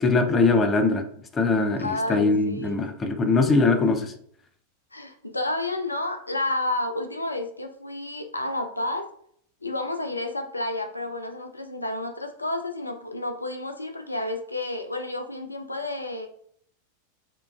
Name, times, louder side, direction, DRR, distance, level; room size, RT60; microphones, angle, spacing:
voice 1, 0.0-1.1 1.3-4.1, left 3 dB, 20° left, 0.4 m, -21 dB
voice 2, 1.8-2.8 4.9-9.1 9.6-16.3, left 2 dB, 85° left, 0.4 m, -30 dB
4.4 x 2.5 x 2.3 m
figure-of-eight pair, 90°, 0 cm